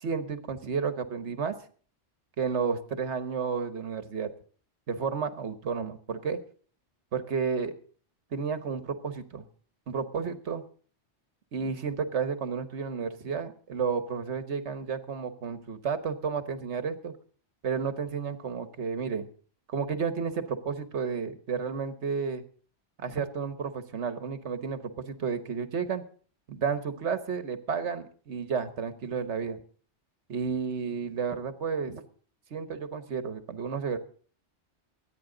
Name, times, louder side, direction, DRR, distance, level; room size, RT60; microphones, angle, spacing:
voice 1, 0.0-1.5 2.4-4.3 4.9-6.4 7.1-7.7 8.3-9.4 9.9-10.6 11.5-17.1 17.6-19.3 19.7-22.4 23.0-26.0 26.5-29.6 30.3-32.0 32.5-34.0, right 6 dB, 75° right, 10 dB, 1.5 m, -32 dB
24.0 x 9.5 x 3.9 m, 0.43 s
omnidirectional pair, 1.2 m